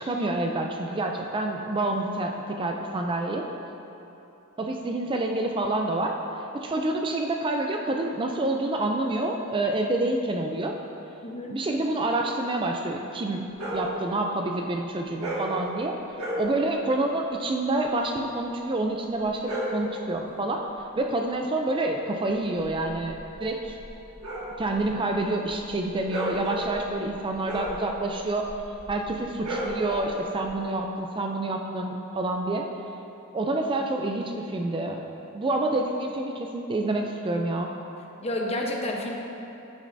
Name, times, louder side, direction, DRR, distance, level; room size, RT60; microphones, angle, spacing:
voice 1, 0.0-3.4 4.6-6.2 6.5-10.8 11.5-13.4 13.7-16.0 16.4-20.6 21.0-23.8 24.6-28.5 28.9-32.7 33.3-35.0 35.3-37.7, right 2 dB, 25° right, 2 dB, 0.4 m, -28 dB
voice 2, 11.2-11.5 38.2-39.1, left 1 dB, 30° left, 0 dB, 0.8 m, -29 dB
sound 1, 13.5-13.9 15.1-15.6 16.1-16.5 19.2-19.9 22.4-30.4, equal, 75° right, 1.6 m, -34 dB
9.9 x 8.4 x 2.6 m, 2.9 s
head